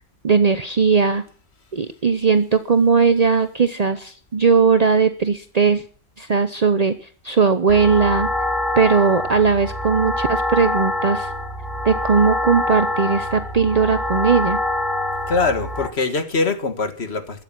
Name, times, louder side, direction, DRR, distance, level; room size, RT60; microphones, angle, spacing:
voice 1, 0.2-1.2 1.7-5.8 6.2-7.0 7.2-8.3 8.8-11.3 11.8-14.6, right 5 dB, 40° right, 0.9 m, -18 dB
sound 1, 7.7-15.9, left 1 dB, ahead, 2.9 m, -25 dB
voice 2, 15.3-17.4, left 4 dB, 80° left, 2.0 m, -22 dB
15.5 x 13.0 x 6.0 m
omnidirectional pair, 1.1 m